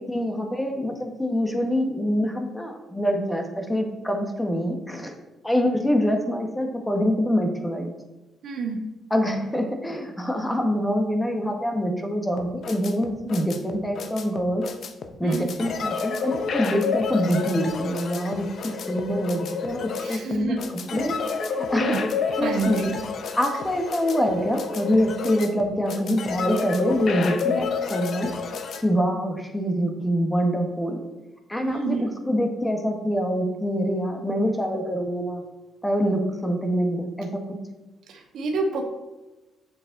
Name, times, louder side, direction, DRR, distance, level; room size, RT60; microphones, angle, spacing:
voice 1, 0.0-5.1 5.4-7.9 9.1-14.7 15.2-20.6 20.9-21.1 21.5-21.9 22.4-22.8 23.4-28.3 28.8-31.0 31.5-35.4 35.8-37.6, equal, 10° left, 3 dB, 1.5 m, -25 dB
voice 2, 8.4-8.8 15.2-15.5 20.0-20.6 20.9-21.1 21.8-22.0 22.4-22.9 31.6-32.0 38.1-38.8, right 4 dB, 75° right, 3 dB, 1.4 m, -28 dB
Plops reggaed, 12.4-28.8, left 5 dB, 60° left, 0.9 m, -30 dB
7.3 x 7.1 x 4.0 m, 1.1 s
cardioid pair, 90°, 0 cm